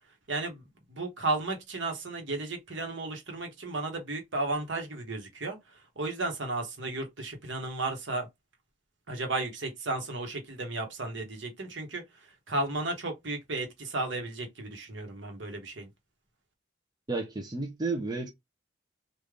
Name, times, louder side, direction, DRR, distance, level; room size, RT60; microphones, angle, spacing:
voice 1, 0.3-5.6 6.0-8.3 9.1-12.0 12.5-15.9, right 2 dB, 65° right, 1.2 m, -34 dB
voice 2, 17.1-18.3, right 3 dB, 20° right, 0.5 m, -32 dB
3.3 x 2.5 x 3.6 m
head